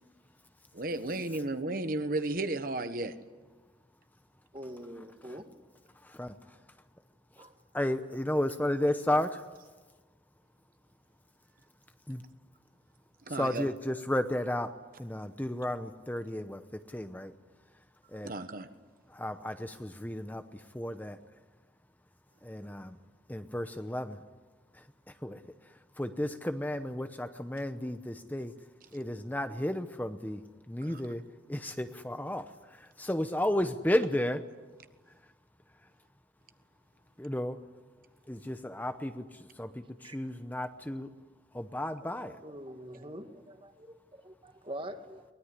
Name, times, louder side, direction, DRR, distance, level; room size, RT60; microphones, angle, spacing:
voice 1, 0.7-3.1 13.3-13.7 18.2-18.7 30.8-31.0, right 2 dB, 50° right, 9 dB, 1.3 m, -33 dB
voice 2, 4.5-5.5 7.4-7.5 40.0-40.2 42.0-45.2, right 1 dB, 30° right, 7 dB, 1.8 m, -45 dB
voice 3, 6.0-6.3 7.7-9.4 12.1-12.2 13.3-14.7 15.0-17.3 18.1-18.3 19.1-21.2 22.4-23.0 23.3-24.2 24.7-24.8 25.2-25.4 26.0-28.5 28.9-31.2 31.5-34.4 37.2-37.6 38.3-41.1 41.5-42.4, left 1 dB, 10° left, 9 dB, 0.8 m, -33 dB
23.5 x 20.0 x 9.7 m, 1.3 s
head